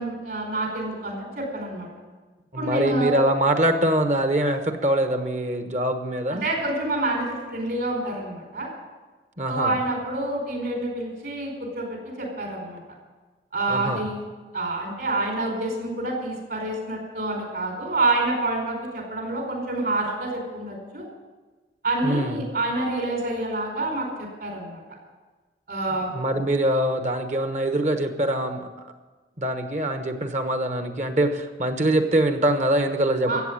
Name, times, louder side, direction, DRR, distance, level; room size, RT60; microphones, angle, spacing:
voice 1, 0.0-1.9 2.6-3.1 6.3-8.7 9.5-12.8 13.5-14.2 14.5-21.0 21.8-24.8 25.7-26.1 33.2-33.4, right 2 dB, 65° right, 0 dB, 4.7 m, -27 dB
voice 2, 2.5-6.5 9.4-9.7 13.7-14.0 22.0-22.4 26.1-28.9 29.4-33.4, right 1 dB, 40° right, 7 dB, 1.2 m, -23 dB
14.5 x 8.3 x 9.9 m, 1.3 s
head